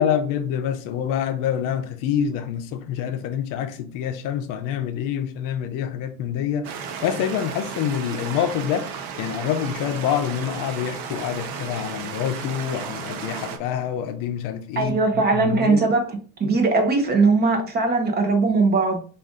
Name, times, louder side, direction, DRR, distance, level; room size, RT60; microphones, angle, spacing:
voice 1, 0.0-6.7 7.0-15.8, left 9 dB, 60° left, 0.6 m, -26 dB
sound 1, 6.6-13.6, right 6 dB, 65° right, 0.8 m, -34 dB
voice 2, 14.8-16.1 16.4-19.0, right 3 dB, 25° right, 0.7 m, -20 dB
4.9 x 2.5 x 3.7 m
cardioid pair, 145°, 38 cm